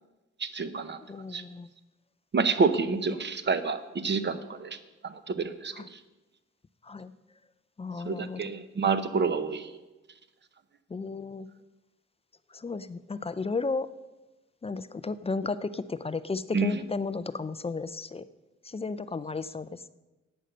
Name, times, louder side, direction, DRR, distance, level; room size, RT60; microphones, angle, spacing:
voice 1, 0.4-1.0 1.3-1.4 2.3-4.8 5.0-6.0 8.0-9.7 16.5-16.8, right 4 dB, 35° right, 11 dB, 0.8 m, -28 dB
voice 2, 1.1-1.7 3.1-3.2 5.7-5.9 6.8-7.1 7.8-8.5 10.9-11.5 12.5-13.9 14.6-18.3 18.6-19.9, left 4 dB, 20° left, 14 dB, 0.3 m, -34 dB
11.5 x 8.9 x 6.6 m, 1.1 s
wide cardioid pair, 145°, 30 cm